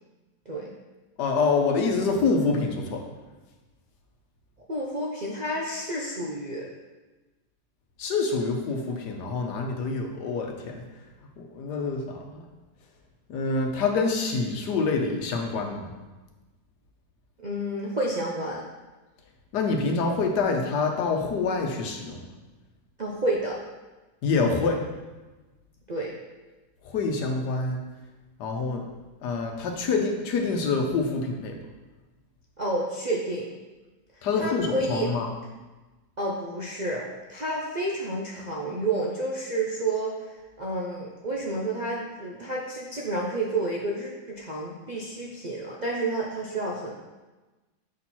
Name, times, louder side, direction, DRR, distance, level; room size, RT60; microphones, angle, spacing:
voice 1, 1.2-3.1 8.0-10.8 11.4-12.4 13.3-15.9 19.5-22.3 24.2-24.8 26.8-27.8 28.4-28.9 29.2-31.6 34.2-35.3, left 4 dB, 80° left, 3 dB, 1.5 m, -26 dB
voice 2, 4.7-6.7 17.4-18.6 23.0-23.6 25.9-26.2 32.6-33.5 34.4-35.1 36.2-47.0, right 2 dB, 45° right, -5 dB, 0.5 m, -30 dB
7.3 x 4.4 x 4.2 m, 1.2 s
omnidirectional pair, 1.7 m